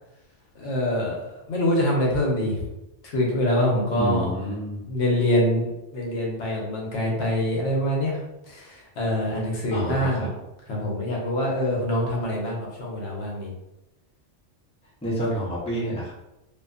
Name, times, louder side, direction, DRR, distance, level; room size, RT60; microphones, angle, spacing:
voice 1, 0.6-2.7 3.0-4.3 4.9-8.2 8.5-10.3 10.7-13.5, left 1 dB, 70° left, -2 dB, 0.9 m, -25 dB
voice 2, 4.0-4.8 9.7-10.3 15.0-16.1, equal, 5° left, -7 dB, 0.5 m, -28 dB
2.6 x 2.5 x 2.3 m, 0.95 s
omnidirectional pair, 1.2 m